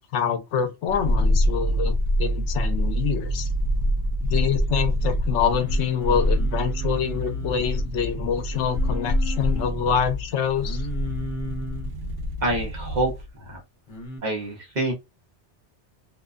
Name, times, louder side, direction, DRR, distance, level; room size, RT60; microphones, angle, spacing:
voice 1, 0.1-3.5 4.2-10.8, left 8 dB, 80° left, 0.9 m, -26 dB
sound 1, 0.9-13.3 13.5-13.6, equal, 85° right, 1.0 m, -25 dB
Singing, 5.4-7.9 8.5-9.7 10.6-11.9 13.9-14.2, left 1 dB, 50° left, 0.8 m, -36 dB
voice 2, 12.4-13.1 13.4-13.6 14.2-14.9, right 2 dB, 40° right, 0.9 m, -26 dB
2.6 x 2.2 x 2.4 m
omnidirectional pair, 1.2 m